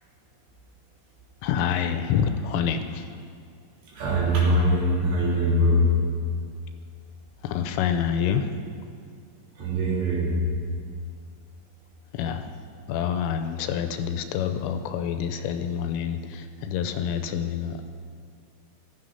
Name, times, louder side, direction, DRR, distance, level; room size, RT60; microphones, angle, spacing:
voice 1, 1.4-3.2 7.4-8.5 12.1-12.5 12.9-17.8, left 8 dB, 85° left, 8 dB, 3.2 m, -27 dB
voice 2, 3.9-5.9 9.6-10.3, equal, 55° right, -5 dB, 4.9 m, -22 dB
16.0 x 12.5 x 5.6 m, 2.2 s
omnidirectional pair, 5.9 m